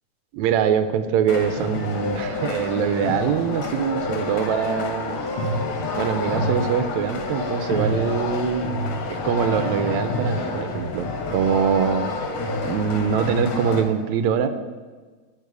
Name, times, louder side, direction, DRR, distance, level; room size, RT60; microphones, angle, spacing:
voice 1, 0.3-5.2 6.0-8.7 9.1-12.1 12.6-14.5, right 7 dB, 80° right, 10 dB, 1.9 m, -23 dB
sound 1, 1.3-13.8, left 2 dB, 65° left, 2.3 m, -28 dB
12.0 x 4.8 x 8.2 m, 1.4 s
omnidirectional pair, 3.4 m